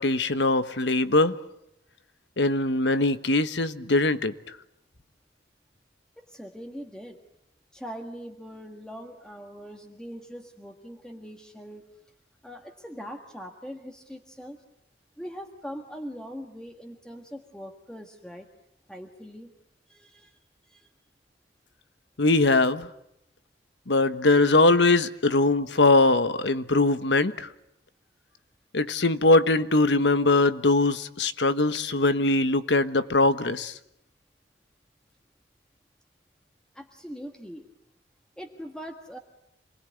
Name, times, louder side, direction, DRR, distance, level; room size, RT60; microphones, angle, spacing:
voice 1, 0.0-1.3 2.4-4.3 22.2-22.9 23.9-27.5 28.7-33.7, left 2 dB, 85° left, 1.2 m, -21 dB
voice 2, 6.3-7.2 7.7-11.9 12.4-14.6 15.2-18.5 18.9-19.5 19.9-20.4 20.7-20.9 36.7-37.7 38.4-39.2, equal, 5° left, 1.5 m, -41 dB
27.5 x 20.5 x 9.4 m
head